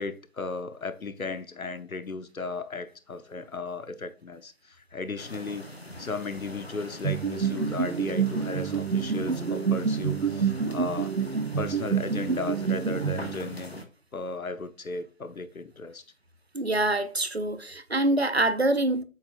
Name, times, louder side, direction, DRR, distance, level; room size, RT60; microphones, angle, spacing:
voice 1, 0.0-5.7 6.0-11.1 11.6-13.8 14.1-16.0, left 3 dB, 85° left, 0.9 m, -35 dB
sound 1, 5.2-13.8, left 1 dB, 50° left, 0.9 m, -43 dB
sound 2, 7.0-13.7, right 6 dB, 65° right, 0.9 m, -28 dB
voice 2, 16.5-19.0, right 2 dB, 50° right, 0.6 m, -25 dB
7.8 x 5.3 x 2.5 m
figure-of-eight pair, 180°, 41 cm